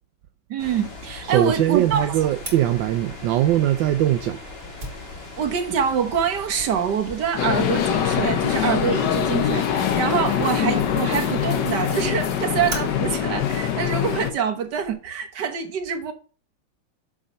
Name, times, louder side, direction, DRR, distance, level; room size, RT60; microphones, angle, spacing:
voice 1, 0.5-2.2 5.4-16.1, right 7 dB, 70° right, 1.8 m, -25 dB
sound 1, 0.6-13.8, left 2 dB, 35° left, 2.2 m, -40 dB
voice 2, 1.2-4.4, right 13 dB, 85° right, 1.3 m, -21 dB
Fire, 2.4-14.9, right 1 dB, 30° right, 3.0 m, -43 dB
sound 2, 7.4-14.3, left 9 dB, 70° left, 1.5 m, -23 dB
7.1 x 5.1 x 5.4 m
omnidirectional pair, 2.0 m